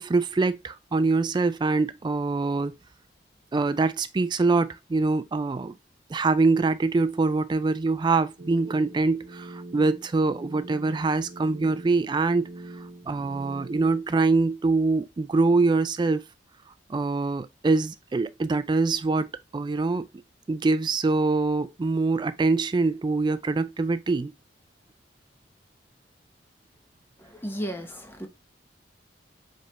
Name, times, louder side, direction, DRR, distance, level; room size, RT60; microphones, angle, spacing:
voice 1, 0.0-2.7 3.5-5.7 6.1-12.5 13.1-16.2 16.9-20.1 20.5-24.3, right 3 dB, 25° right, 0.3 m, -24 dB
sound 1, 8.4-14.0, right 2 dB, 55° right, 0.8 m, -43 dB
voice 2, 27.3-28.3, equal, 15° left, 0.8 m, -34 dB
4.8 x 3.5 x 2.9 m
head